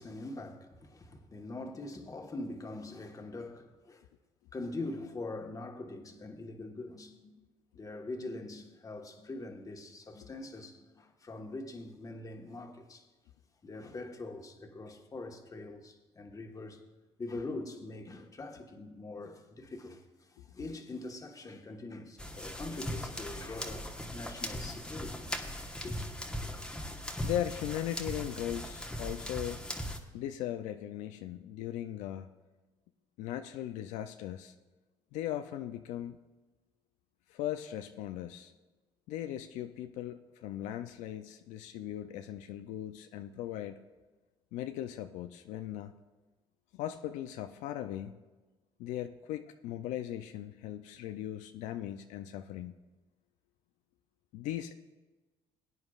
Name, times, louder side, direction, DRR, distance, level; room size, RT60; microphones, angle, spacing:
voice 1, 0.0-4.1 4.5-7.4 7.7-13.1 13.6-16.8 17.2-25.3 25.8-26.1, left 2 dB, 30° left, 1.4 m, -43 dB
sound 1, 22.2-30.0, equal, 5° left, 1.2 m, -39 dB
voice 2, 27.2-29.6 30.1-32.3 33.2-34.5 35.1-36.2 37.3-38.5 39.1-43.8 44.5-45.9 46.7-48.1 48.8-52.8 54.3-54.8, left 12 dB, 80° left, 0.4 m, -38 dB
18.5 x 9.4 x 2.4 m
supercardioid pair, 80°, 12 cm